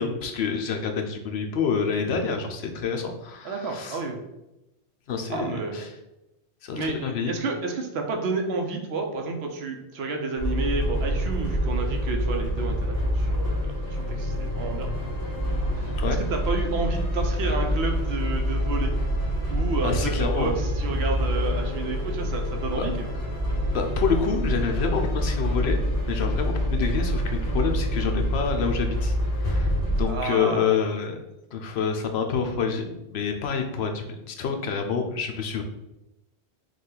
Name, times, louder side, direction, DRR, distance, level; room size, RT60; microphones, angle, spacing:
voice 1, 0.0-4.0 5.1-5.9 6.6-7.3 16.0-16.2 19.8-20.6 23.7-25.8 26.1-31.2 31.5-35.6, left 6 dB, 75° left, 4 dB, 0.9 m, -27 dB
voice 2, 3.4-4.2 5.3-5.8 6.7-14.9 15.8-18.9 19.5-23.1 30.1-30.7, right 3 dB, 75° right, 3 dB, 0.9 m, -30 dB
sound 1, 10.4-30.0, equal, 55° left, 1.5 m, -26 dB
4.9 x 2.4 x 3.8 m, 0.94 s
omnidirectional pair, 1.1 m